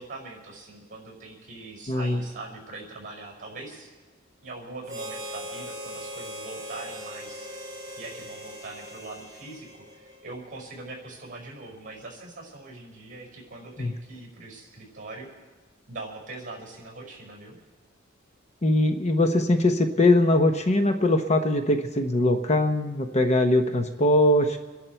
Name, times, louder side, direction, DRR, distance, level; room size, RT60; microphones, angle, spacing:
voice 1, 0.0-3.9 4.4-7.5 8.0-15.3 15.9-17.6, right 2 dB, 40° right, 0 dB, 5.4 m, -42 dB
voice 2, 1.9-2.2 13.8-13.9 18.6-24.6, left 1 dB, 35° left, 7 dB, 0.8 m, -21 dB
Harmonica, 4.9-10.4, equal, 20° right, 3.1 m, -39 dB
28.5 x 11.0 x 4.5 m, 1.2 s
head